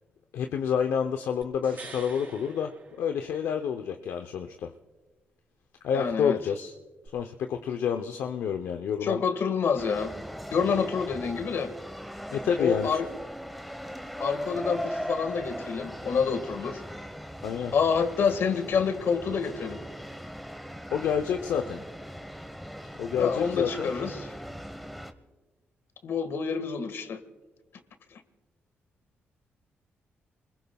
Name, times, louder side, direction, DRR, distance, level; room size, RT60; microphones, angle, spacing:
voice 1, 0.3-2.7 3.0-4.7 5.8-6.7 7.1-9.2 12.3-13.0 17.4-17.7 20.9-21.8 23.0-23.9, left 7 dB, 85° left, 5 dB, 0.7 m, -29 dB
sound 1, 1.4-3.7 7.1-7.2, right 3 dB, 45° right, 4.6 m, -47 dB
voice 2, 5.9-6.4 9.0-10.1 10.5-11.7 12.6-13.1 14.2-16.8 17.7-19.8 23.1-24.3 26.0-27.2, left 6 dB, 70° left, 9 dB, 1.7 m, -27 dB
sound 2, 9.8-25.1, equal, ahead, 1.1 m, -39 dB
28.5 x 21.5 x 2.3 m, 1.2 s
cardioid pair, 80°, 4 cm